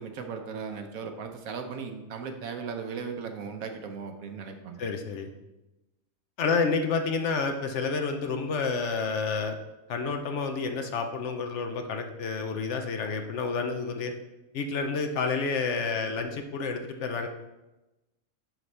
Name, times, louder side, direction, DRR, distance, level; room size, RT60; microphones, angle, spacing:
voice 1, 0.0-4.8, right 5 dB, 80° right, 6 dB, 1.2 m, -37 dB
voice 2, 4.8-5.3 6.4-9.6 9.9-14.1 14.5-17.3, left 4 dB, 65° left, 6 dB, 0.9 m, -29 dB
10.5 x 4.1 x 3.3 m, 1.0 s
omnidirectional pair, 1.4 m